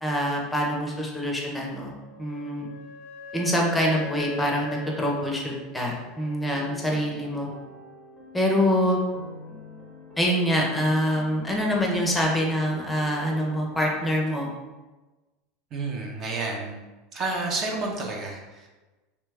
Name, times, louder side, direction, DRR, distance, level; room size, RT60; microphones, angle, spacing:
voice 1, 0.0-1.9 2.2-2.7 3.3-7.5 8.3-9.0 10.2-14.5, equal, 10° left, -1 dB, 0.6 m, -25 dB
Wind instrument woodwind instrument, 2.0-6.6, left 7 dB, 55° left, 0.4 m, -41 dB
sound 1, 6.4-14.1, left 1 dB, 20° right, 1.0 m, -46 dB
voice 2, 15.7-16.8 17.1-18.7, right 3 dB, 40° right, 0 dB, 0.6 m, -30 dB
3.0 x 2.2 x 3.3 m, 1.2 s
supercardioid pair, 120°, 0 cm